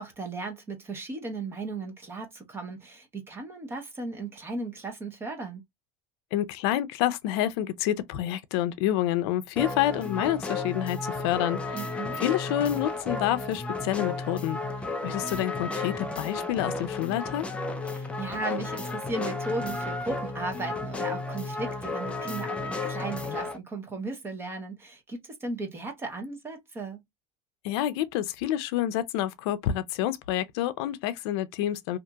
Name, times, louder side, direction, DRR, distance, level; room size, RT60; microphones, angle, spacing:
voice 1, 0.0-5.6 11.7-12.2 17.8-27.0, right 3 dB, 15° right, 0.7 m, -36 dB
voice 2, 6.3-11.8 12.2-14.6 15.0-17.5 27.6-32.0, left 12 dB, 85° left, 0.5 m, -28 dB
sound 1, 9.6-23.6, left 3 dB, 10° left, 0.3 m, -33 dB
2.8 x 2.5 x 2.2 m
cardioid pair, 155°, 13 cm